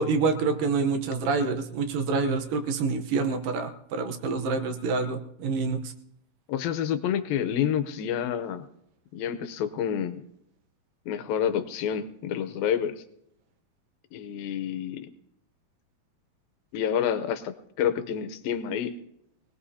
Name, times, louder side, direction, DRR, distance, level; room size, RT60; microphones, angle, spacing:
voice 1, 0.0-5.9, right 4 dB, 75° right, 5 dB, 2.7 m, -27 dB
voice 2, 6.5-8.7 9.1-10.2 11.1-13.0 14.1-15.1 16.7-19.0, left 9 dB, 90° left, 10 dB, 2.7 m, -28 dB
21.0 x 18.0 x 2.8 m, 0.75 s
omnidirectional pair, 4.0 m